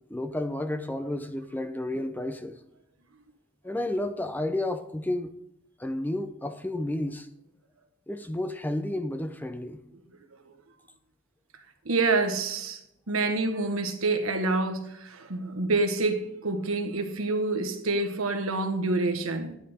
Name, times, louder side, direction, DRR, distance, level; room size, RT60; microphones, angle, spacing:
voice 1, 0.1-2.6 3.6-5.3 5.8-7.3 8.1-9.8, left 1 dB, 10° left, 0.5 m, -31 dB
voice 2, 11.8-12.8 13.1-19.6, right 3 dB, 80° right, 1.3 m, -27 dB
11.5 x 10.5 x 3.5 m
head